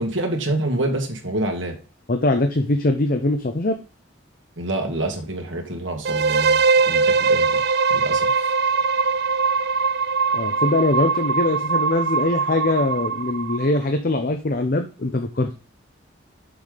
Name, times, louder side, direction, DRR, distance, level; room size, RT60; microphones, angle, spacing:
voice 1, 0.0-1.8 4.6-6.6 6.9-7.6 7.9-8.3, right 1 dB, 80° right, 3 dB, 2.1 m, -26 dB
voice 2, 2.1-3.8 10.3-15.5, left 2 dB, 50° left, 6 dB, 0.7 m, -22 dB
sound 1, 6.0-13.8, right 5 dB, 55° right, 0.4 m, -21 dB
6.9 x 5.7 x 5.2 m, 0.34 s
head